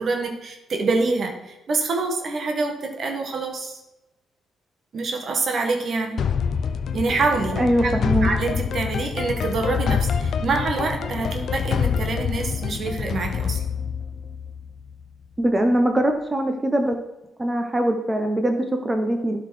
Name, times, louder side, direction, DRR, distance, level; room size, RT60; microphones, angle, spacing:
voice 1, 0.0-3.8 4.9-6.2 6.9-7.9 8.2-13.6, right 3 dB, 55° right, 3 dB, 1.5 m, -26 dB
sound 1, 6.2-15.0, left 7 dB, 60° left, 0.5 m, -26 dB
voice 2, 7.6-8.3 15.4-17.0 17.4-19.4, right 1 dB, 20° right, 4 dB, 1.0 m, -22 dB
11.5 x 4.1 x 4.9 m, 0.96 s
hypercardioid pair, 50°, 0 cm